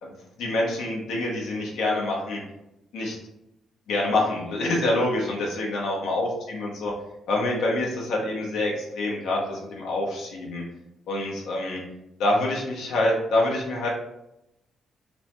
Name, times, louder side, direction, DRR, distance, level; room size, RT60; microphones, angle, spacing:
voice 1, 0.4-2.4 2.9-3.2 3.9-6.9 7.3-10.6 11.1-11.8 12.2-13.9, left 2 dB, 85° left, -2 dB, 0.7 m, -26 dB
3.0 x 2.1 x 2.8 m, 0.85 s
cardioid pair, 115°, 0 cm